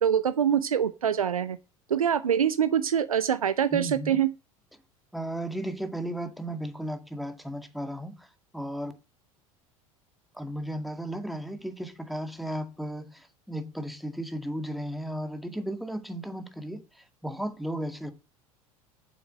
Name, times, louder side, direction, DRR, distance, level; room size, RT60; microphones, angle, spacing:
voice 1, 0.0-1.6 1.9-4.3, right 8 dB, 75° right, 0.7 m, -24 dB
voice 2, 3.7-4.2 5.1-8.3 8.5-8.9 10.3-18.1, right 1 dB, ahead, 2.0 m, -35 dB
9.6 x 7.1 x 7.7 m
figure-of-eight pair, 70°, 18 cm